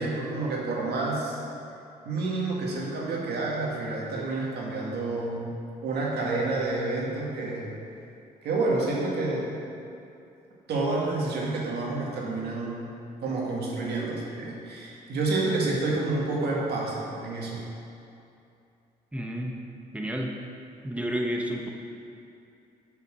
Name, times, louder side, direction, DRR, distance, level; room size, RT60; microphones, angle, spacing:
voice 1, 0.0-1.4 2.0-5.5 5.8-7.8 8.4-9.5 10.7-12.9 13.2-17.6, right 2 dB, 80° right, -3 dB, 1.9 m, -29 dB
voice 2, 19.1-19.5 19.9-20.3 20.8-21.7, equal, 10° right, 0 dB, 1.1 m, -30 dB
7.8 x 5.8 x 6.3 m, 2.7 s
cardioid pair, 100°, 17 cm